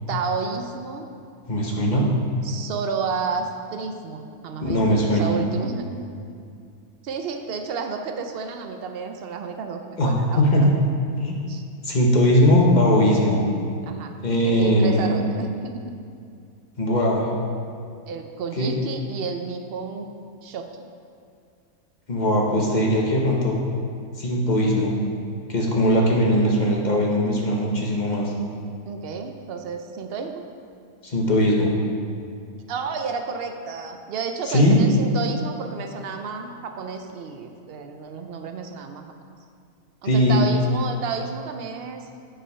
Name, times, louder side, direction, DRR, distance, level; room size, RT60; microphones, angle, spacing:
voice 1, 0.1-1.1 2.4-6.1 7.0-10.4 11.5-11.6 13.8-14.1 14.4-15.9 18.1-20.1 20.4-20.7 28.9-30.5 32.7-39.0 40.0-42.1, right 5 dB, 65° right, 5 dB, 0.5 m, -31 dB
voice 2, 1.5-2.1 4.6-5.3 10.0-10.7 11.2-11.4 11.8-13.4 14.2-15.2 16.8-17.3 18.6-18.8 22.1-23.6 24.2-24.9 25.5-28.3 31.0-31.7 34.5-34.8 40.0-40.5, equal, 35° left, -2 dB, 1.0 m, -20 dB
7.6 x 5.0 x 5.5 m, 2.3 s
omnidirectional pair, 1.6 m